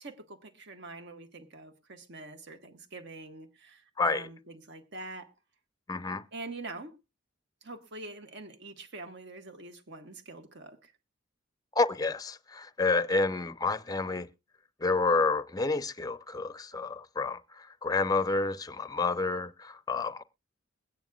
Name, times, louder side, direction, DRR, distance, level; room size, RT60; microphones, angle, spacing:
voice 1, 0.0-5.3 6.3-6.9 7.6-10.9, right 2 dB, 60° right, 1.5 m, -45 dB
voice 2, 4.0-4.3 5.9-6.2 11.8-14.3 14.8-20.2, left 3 dB, 20° left, 0.5 m, -29 dB
22.0 x 9.2 x 2.3 m
head